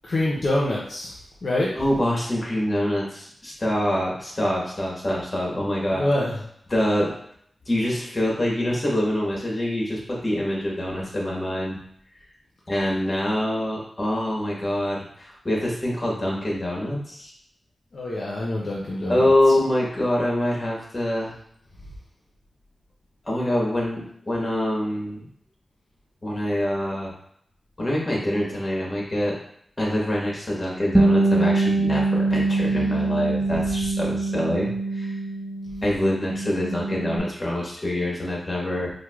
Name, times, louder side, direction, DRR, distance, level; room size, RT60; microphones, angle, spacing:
voice 1, 0.0-1.1 1.4-1.7 5.9-6.3 17.9-19.3, left 1 dB, 65° left, -5 dB, 0.6 m, -25 dB
voice 2, 1.7-6.0 6.7-7.1 7.7-11.8 12.7-17.3 19.1-21.3 23.2-25.3 26.2-27.1 27.8-29.4 29.8-35.1 35.8-38.9, left 1 dB, 40° left, -3 dB, 1.3 m, -25 dB
Bass guitar, 30.9-37.2, right 2 dB, 25° right, 0.4 m, -23 dB
4.6 x 2.1 x 2.3 m, 0.67 s
cardioid pair, 45°, 0 cm